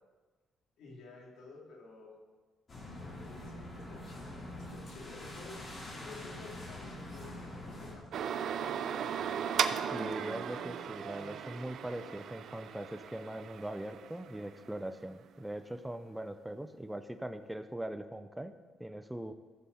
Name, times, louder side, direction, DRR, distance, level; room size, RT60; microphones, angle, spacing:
voice 1, 0.8-2.1 2.9-8.8, left 3 dB, 80° left, -2 dB, 3.0 m, -52 dB
sound 1, 2.7-7.9, left 1 dB, 45° left, 4.0 m, -45 dB
sound 2, 8.1-14.8, right 8 dB, 70° right, 0.5 m, -37 dB
voice 2, 9.9-19.3, right 1 dB, 10° right, 10 dB, 0.6 m, -41 dB
15.0 x 7.2 x 4.2 m, 1.3 s
cardioid pair, 75°, 0 cm